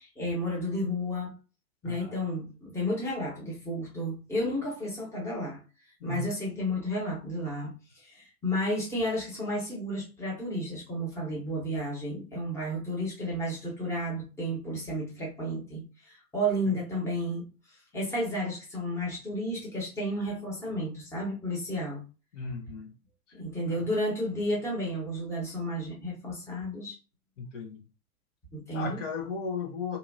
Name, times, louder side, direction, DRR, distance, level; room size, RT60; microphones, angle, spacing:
voice 1, 0.0-1.3 1.8-5.6 6.0-7.7 8.1-17.4 17.9-22.0 23.3-26.9 28.5-29.0, equal, 5° left, 1.1 m, -32 dB
voice 2, 1.8-2.2 6.0-6.3 16.7-16.8 22.3-22.9 23.6-23.8 27.4-27.8 28.7-30.0, left 4 dB, 55° left, 1.0 m, -36 dB
2.8 x 2.5 x 2.6 m
figure-of-eight pair, 105°, 45 cm